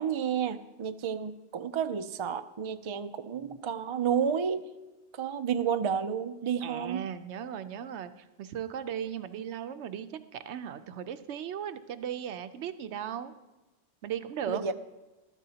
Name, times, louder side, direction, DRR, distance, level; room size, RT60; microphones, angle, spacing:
voice 1, 0.0-4.7 5.1-7.1 14.5-14.7, right 7 dB, 45° right, 9 dB, 0.4 m, -31 dB
voice 2, 6.6-13.3 14.0-14.7, right 9 dB, 85° right, 11 dB, 0.9 m, -37 dB
13.0 x 12.5 x 2.8 m, 1.1 s
omnidirectional pair, 1.1 m